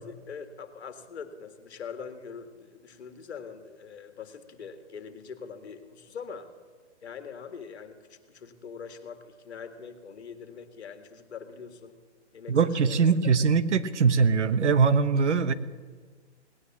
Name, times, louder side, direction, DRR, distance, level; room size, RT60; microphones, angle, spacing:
voice 1, 0.0-6.5 7.0-11.9 12.3-13.1 15.1-15.3, left 6 dB, 65° left, 8 dB, 2.0 m, -43 dB
voice 2, 12.5-15.5, right 5 dB, 80° right, 13 dB, 1.1 m, -22 dB
18.5 x 10.0 x 7.4 m, 1.5 s
hypercardioid pair, 160°, 35 cm